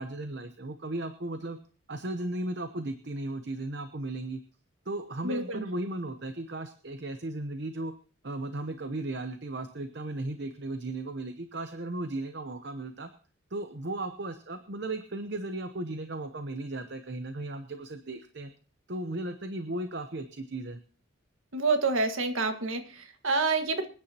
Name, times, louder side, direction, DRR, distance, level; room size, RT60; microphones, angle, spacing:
voice 1, 0.0-1.6 1.9-4.4 4.9-7.9 8.2-13.1 13.5-18.5 18.9-20.8, right 2 dB, 55° right, 8 dB, 0.8 m, -36 dB
voice 2, 5.2-5.7 21.5-23.9, right 3 dB, 80° right, 6 dB, 1.7 m, -28 dB
26.0 x 9.7 x 2.9 m, 0.39 s
head